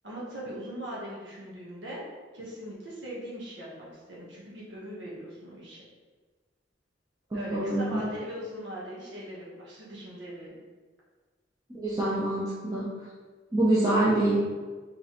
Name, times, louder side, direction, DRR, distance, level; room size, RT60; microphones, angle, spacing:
voice 1, 0.0-2.1 2.3-5.8 7.3-10.5, equal, 80° right, -6 dB, 1.1 m, -40 dB
voice 2, 7.5-8.0 11.7-12.9 13.5-14.5, right 1 dB, 20° right, -9 dB, 0.7 m, -25 dB
4.6 x 3.2 x 3.0 m, 1.4 s
head